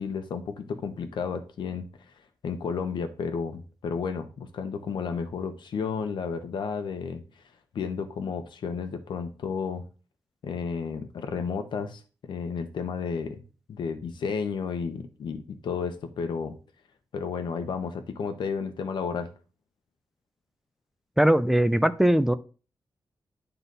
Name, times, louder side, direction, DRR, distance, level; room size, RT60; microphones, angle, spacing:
voice 1, 0.0-1.9 2.4-7.2 7.7-9.8 10.4-13.4 13.7-16.6 17.1-19.3, left 5 dB, 85° left, 8 dB, 1.0 m, -32 dB
voice 2, 21.2-22.3, right 1 dB, 5° right, 12 dB, 0.4 m, -20 dB
9.4 x 4.0 x 4.0 m, 0.35 s
wide cardioid pair, 145°, 8 cm